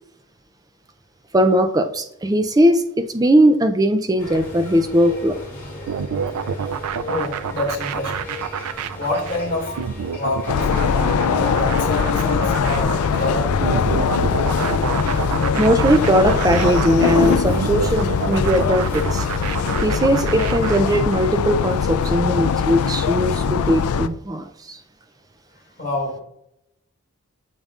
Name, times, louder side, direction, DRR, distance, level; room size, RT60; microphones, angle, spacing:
voice 1, 1.3-5.4 15.5-19.3 19.8-24.8, equal, 15° right, 0.4 m, -19 dB
sound 1, 4.2-19.9, left 1 dB, 10° left, 2.3 m, -36 dB
sound 2, 5.9-21.3, right 7 dB, 90° right, 0.4 m, -28 dB
voice 2, 7.1-8.3 8.9-9.9 10.1-10.5 11.3-14.0 25.8-26.2, left 2 dB, 40° left, 2.3 m, -27 dB
sound 3, 10.5-24.1, left 6 dB, 85° left, 0.4 m, -21 dB
8.7 x 5.5 x 2.4 m
head